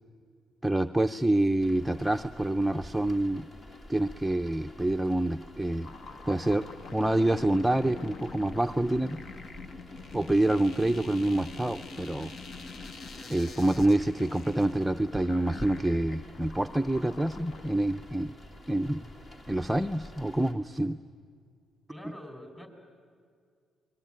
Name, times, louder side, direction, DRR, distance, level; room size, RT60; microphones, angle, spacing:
voice 1, 0.6-3.5 3.9-5.9 6.3-6.6 6.9-9.2 10.1-12.3 13.3-18.4 18.7-19.1 19.5-21.0, right 1 dB, 5° right, 7 dB, 0.6 m, -27 dB
sound 1, 1.6-20.5, left 1 dB, 40° left, 2.8 m, -49 dB
sound 2, 5.8-17.7, left 4 dB, 60° left, 1.4 m, -45 dB
voice 2, 21.9-22.7, equal, 15° left, 6 dB, 4.6 m, -45 dB
27.5 x 21.5 x 9.0 m, 2.1 s
cardioid pair, 90°, 0 cm